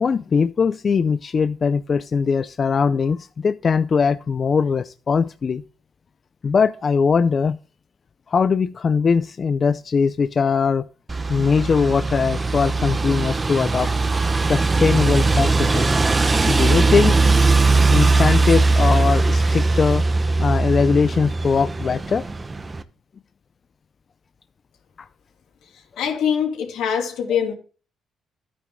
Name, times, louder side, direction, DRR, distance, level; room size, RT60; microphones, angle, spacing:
voice 1, 0.0-5.6 6.4-7.6 8.3-10.9 11.3-13.9 14.5-15.9 16.5-17.2 17.9-20.0 20.4-22.2, left 5 dB, 45° left, 0.4 m, -20 dB
sound 1, 11.1-22.8, right 3 dB, 25° right, 1.0 m, -19 dB
voice 2, 26.0-27.5, left 8 dB, 85° left, 2.7 m, -23 dB
12.5 x 9.5 x 2.2 m
cardioid pair, 90°, 0 cm